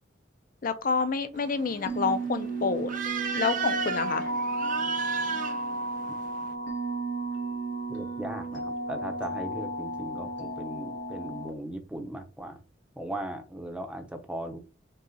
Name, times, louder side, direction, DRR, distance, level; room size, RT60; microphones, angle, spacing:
voice 1, 0.6-2.9 3.3-4.3, left 5 dB, 50° left, 0.5 m, -28 dB
sound 1, 1.3-6.5, right 6 dB, 45° right, 0.6 m, -35 dB
sound 2, 1.8-11.5, right 2 dB, 80° left, 1.9 m, -33 dB
voice 2, 7.9-12.6 13.0-14.6, right 1 dB, 5° right, 0.7 m, -38 dB
5.4 x 2.4 x 4.0 m
head